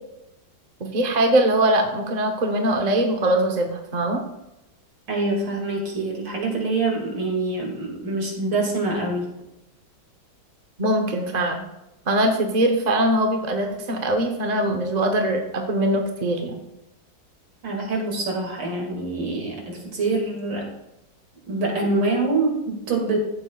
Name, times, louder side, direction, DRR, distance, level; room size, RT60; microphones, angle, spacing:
voice 1, 0.8-4.2 10.8-11.6 12.1-16.5, right 1 dB, 35° right, 3 dB, 0.7 m, -22 dB
voice 2, 5.1-9.3 17.6-20.7 21.5-23.2, right 3 dB, 80° right, 0 dB, 2.9 m, -25 dB
14.5 x 7.7 x 2.3 m, 0.90 s
omnidirectional pair, 2.0 m